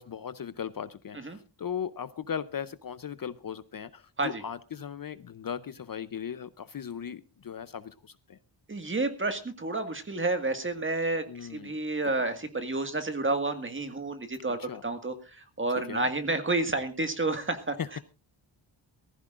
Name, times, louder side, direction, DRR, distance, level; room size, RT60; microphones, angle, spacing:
voice 1, 0.0-8.4 11.3-11.8 14.6-14.8 15.9-16.1 17.8-18.0, left 8 dB, 45° left, 0.6 m, -38 dB
voice 2, 8.7-17.8, right 2 dB, 25° right, 1.8 m, -30 dB
23.0 x 14.5 x 2.5 m
wide cardioid pair, 145°, 48 cm